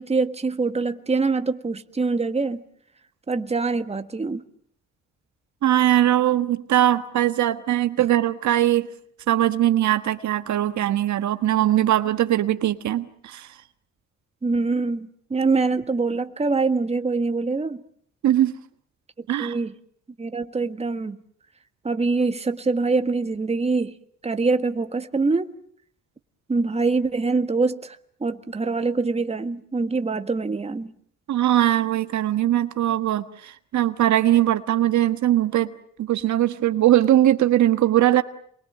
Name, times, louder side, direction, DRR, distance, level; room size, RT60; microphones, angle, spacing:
voice 1, 0.0-2.6 3.3-4.4 14.4-17.8 19.4-19.7 20.2-21.2 21.8-23.9 24.2-25.5 26.5-30.9, right 3 dB, 20° right, 1.6 m, -24 dB
voice 2, 5.6-8.9 9.3-13.5 18.2-18.5 19.3-19.6 31.3-35.7 36.0-38.2, right 12 dB, 70° right, 1.4 m, -20 dB
28.5 x 22.0 x 7.6 m
cardioid pair, 90°, 30 cm